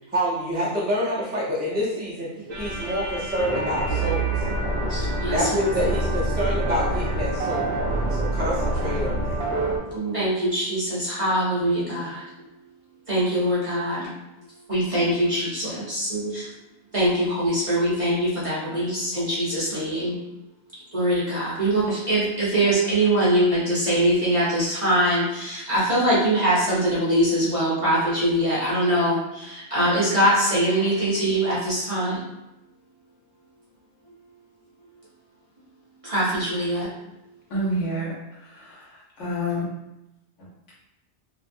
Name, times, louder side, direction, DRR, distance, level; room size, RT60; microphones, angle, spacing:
voice 1, 0.1-2.3 2.6-4.4 5.3-7.7 8.1-9.4, equal, 10° right, -8 dB, 0.5 m, -27 dB
sound 1, 2.5-9.8, right 2 dB, 70° right, 0.9 m, -26 dB
voice 2, 4.9-5.4 9.9-12.2 13.1-14.1 14.7-16.5 16.9-20.2 20.9-32.2 36.0-36.9, right 1 dB, 30° right, -9 dB, 0.8 m, -23 dB
voice 3, 37.5-38.1 38.4-39.7, equal, 90° left, -6 dB, 1.3 m, -28 dB
2.8 x 2.4 x 2.6 m, 0.92 s
omnidirectional pair, 1.2 m